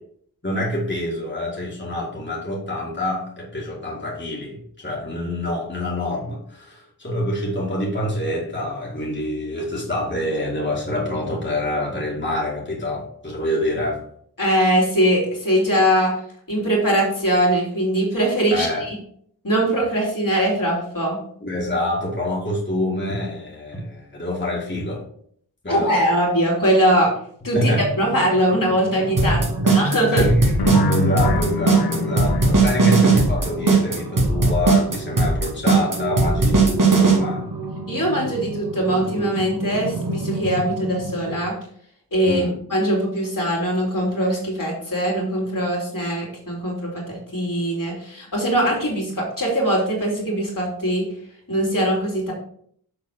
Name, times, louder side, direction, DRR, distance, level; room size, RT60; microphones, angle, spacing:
voice 1, 0.4-14.0 18.5-18.9 21.4-25.1 25.6-26.1 27.5-27.9 29.2-29.8 30.1-37.4 42.3-42.6, left 1 dB, 30° left, -4 dB, 2.3 m, -26 dB
voice 2, 14.4-16.1 16.5-18.7 19.4-21.2 25.7-27.1 27.4-27.7 28.0-29.4 29.7-30.2 37.9-41.5 42.1-42.4 42.7-51.1 51.5-52.3, right 1 dB, 60° left, -3 dB, 3.0 m, -21 dB
sound 1, 27.6-41.4, right 2 dB, 80° right, 1.1 m, -31 dB
sound 2, 29.2-37.2, right 4 dB, 55° right, 1.9 m, -17 dB
sound 3, 30.6-33.5, left 1 dB, 85° left, 0.8 m, -25 dB
6.8 x 4.1 x 6.3 m, 0.63 s
wide cardioid pair, 45°, 38 cm